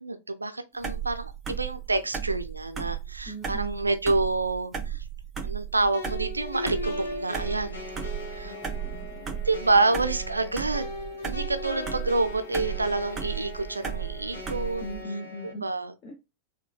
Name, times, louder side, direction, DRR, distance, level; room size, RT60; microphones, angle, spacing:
voice 1, 0.0-5.0 5.4-7.8 8.3-8.5 9.4-10.9 11.2-14.8 15.6-15.9, right 3 dB, 80° right, 0.4 m, -28 dB
sound 1, 0.8-15.0, right 8 dB, 25° right, 0.5 m, -35 dB
voice 2, 3.3-3.9 8.4-9.4 14.8-15.7 16.0-16.2, equal, 35° left, 0.6 m, -40 dB
sound 2, 5.9-15.5, left 2 dB, 80° left, 0.9 m, -39 dB
3.2 x 2.1 x 2.3 m
figure-of-eight pair, 90°, 0 cm